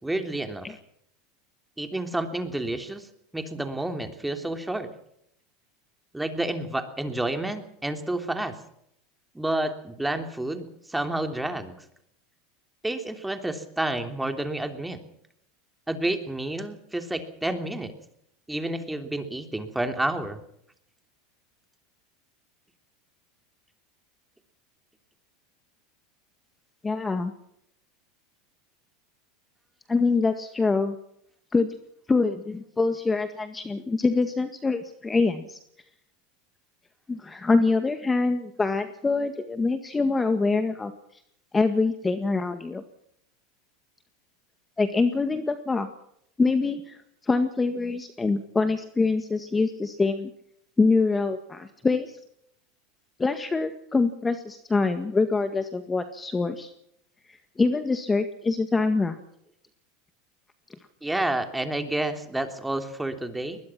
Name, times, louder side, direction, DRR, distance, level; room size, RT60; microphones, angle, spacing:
voice 1, 0.0-0.7 1.8-3.1 3.3-4.9 6.1-8.6 9.3-11.7 12.8-15.0 15.9-17.9 18.5-20.4 61.0-63.6, right 1 dB, 5° right, 7 dB, 3.3 m, -29 dB
voice 2, 26.8-27.3 29.9-31.0 31.5-31.7 32.1-35.6 37.1-40.9 41.5-42.8 44.8-45.9 46.4-47.0 47.2-50.3 50.8-52.2 53.2-56.7 57.6-59.2, left 3 dB, 15° left, 9 dB, 1.8 m, -24 dB
22.0 x 21.0 x 6.0 m, 0.73 s
hypercardioid pair, 105°, 0 cm